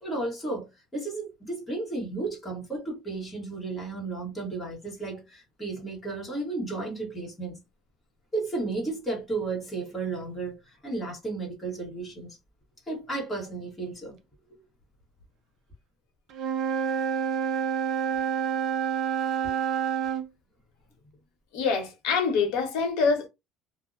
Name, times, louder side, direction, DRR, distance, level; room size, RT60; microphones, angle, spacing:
voice 1, 0.0-7.6 8.3-12.4 12.9-14.2 19.4-19.5, right 3 dB, 10° left, 1.0 m, -33 dB
Wind instrument woodwind instrument, 16.3-20.3, right 8 dB, 40° right, 0.4 m, -28 dB
voice 2, 21.5-23.3, left 5 dB, 80° left, 0.9 m, -25 dB
2.6 x 2.0 x 2.4 m
cardioid pair, 175°, 0 cm